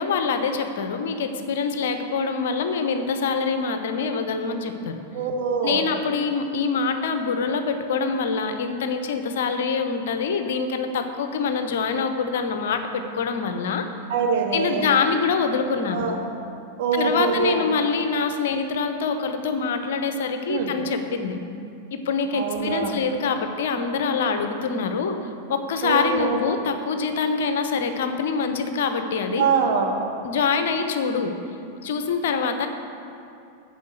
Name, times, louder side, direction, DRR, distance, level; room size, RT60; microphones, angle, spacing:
voice 1, 0.0-5.0 5.6-13.9 14.5-16.2 16.9-21.4 21.9-25.2 25.5-29.5 30.2-31.3 31.8-32.7, left 5 dB, 55° left, 7 dB, 0.9 m, -25 dB
voice 2, 5.1-5.9 14.1-14.9 15.9-16.2 16.8-17.6 20.5-20.7 22.3-22.9 25.8-26.4 29.4-30.0, right 5 dB, 50° right, 1 dB, 1.7 m, -24 dB
9.3 x 7.1 x 8.1 m, 2.6 s
figure-of-eight pair, 90°, 0 cm